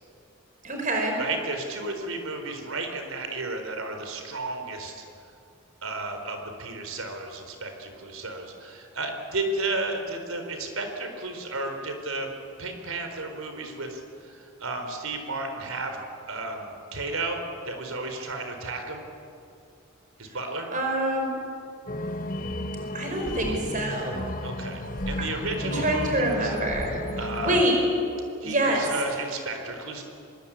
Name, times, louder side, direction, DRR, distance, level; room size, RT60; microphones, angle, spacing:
voice 1, 0.6-1.2 20.7-21.3 22.9-24.1 25.6-26.9 27.4-27.8 28.4-28.8, right 1 dB, 40° right, 2 dB, 5.4 m, -26 dB
voice 2, 1.2-5.1 5.8-16.0 16.3-19.1 20.2-20.7 24.4-26.5 27.2-27.7 28.4-30.0, right 2 dB, 75° right, 5 dB, 4.2 m, -33 dB
sound 1, 21.9-27.6, left 1 dB, 40° left, 1.5 m, -33 dB
24.5 x 22.5 x 8.9 m, 2.6 s
head